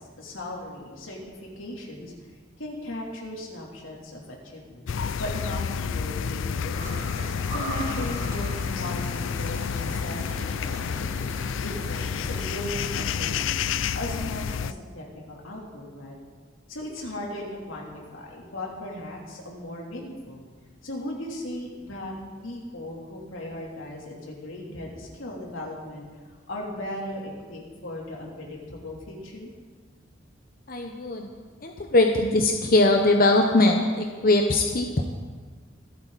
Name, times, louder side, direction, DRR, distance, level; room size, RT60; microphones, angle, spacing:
voice 1, 0.0-2.1 2.6-4.9 5.2-7.1 7.5-13.6 13.9-16.2 16.7-20.4 20.8-22.1 22.4-26.1 26.5-29.5, left 1 dB, 90° left, -2 dB, 3.4 m, -37 dB
sound 1, 4.9-14.7, left 7 dB, 75° left, 0.4 m, -30 dB
sound 2, 6.7-13.5, right 1 dB, 20° right, 3.9 m, -40 dB
voice 2, 30.7-31.3 31.6-35.0, left 2 dB, 45° left, 2 dB, 0.9 m, -21 dB
25.5 x 8.7 x 4.2 m, 1.6 s
head